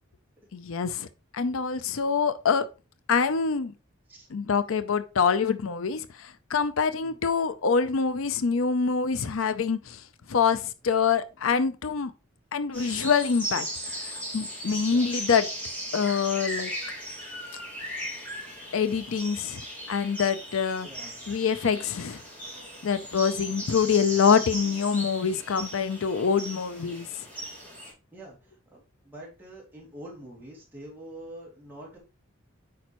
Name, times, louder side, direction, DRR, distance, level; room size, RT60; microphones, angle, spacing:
voice 1, 0.5-1.1 1.3-2.7 3.1-3.7 4.3-10.0 10.3-12.1 12.5-13.7 13.9-15.5 15.9-16.7 18.7-19.6 19.9-20.9 21.3-22.2 22.8-27.1, left 6 dB, 75° left, 0.5 m, -25 dB
sound 1, 12.7-27.9, equal, 10° left, 2.7 m, -37 dB
voice 2, 18.0-18.8 20.8-21.5 22.4-22.6 23.8-24.0 28.1-32.0, right 1 dB, 10° right, 2.7 m, -47 dB
8.6 x 5.1 x 3.0 m
head